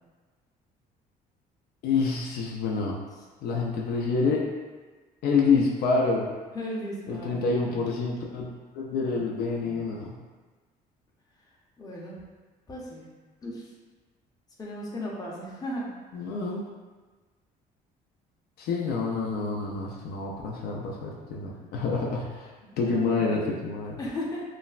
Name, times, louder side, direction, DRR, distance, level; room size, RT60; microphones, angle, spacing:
voice 1, 1.8-3.0 3.4-4.4 5.2-6.3 7.1-8.5 8.7-10.2 16.1-16.6 18.6-24.0, left 4 dB, 70° left, -2 dB, 0.4 m, -27 dB
voice 2, 6.5-7.9 11.8-12.2 12.7-13.0 13.4-13.7 14.6-15.9 22.6-23.2 24.0-24.4, left 1 dB, 20° left, -4 dB, 0.6 m, -36 dB
3.1 x 2.1 x 2.4 m, 1.3 s
cardioid pair, 110°, 17 cm